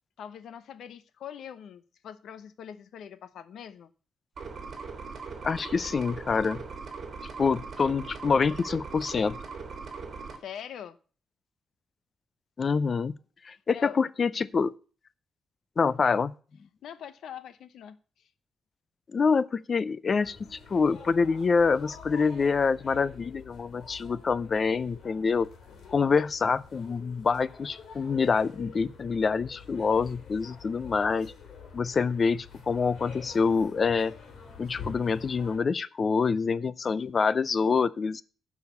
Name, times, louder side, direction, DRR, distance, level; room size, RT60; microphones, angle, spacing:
voice 1, 0.2-3.9 10.4-11.0 13.7-14.0 16.8-18.0, left 9 dB, 85° left, 0.8 m, -43 dB
sound 1, 4.4-10.4, right 4 dB, 45° right, 2.2 m, -40 dB
voice 2, 5.4-6.6 7.4-9.4 12.6-13.2 13.4-14.7 15.8-16.3 19.1-25.5 25.9-31.3 31.7-34.1 34.6-38.2, left 5 dB, 35° left, 0.4 m, -26 dB
sound 2, 20.2-35.6, left 6 dB, 70° left, 2.9 m, -47 dB
11.5 x 4.9 x 6.8 m
wide cardioid pair, 150°, 0 cm